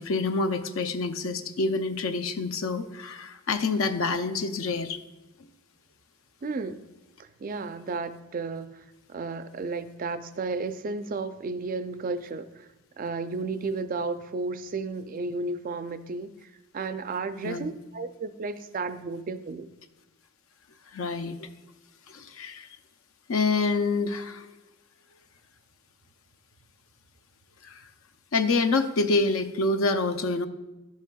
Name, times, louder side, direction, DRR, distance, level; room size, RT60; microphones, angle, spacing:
voice 1, 0.0-5.0 17.4-17.6 20.9-21.5 22.1-22.7 23.3-24.5 27.6-27.8 28.3-30.5, left 3 dB, 70° left, 9 dB, 0.5 m, -27 dB
voice 2, 6.4-6.8 7.2-12.7 13.0-19.7, right 3 dB, 40° right, 11 dB, 0.3 m, -33 dB
11.5 x 7.2 x 2.3 m, 1.0 s
head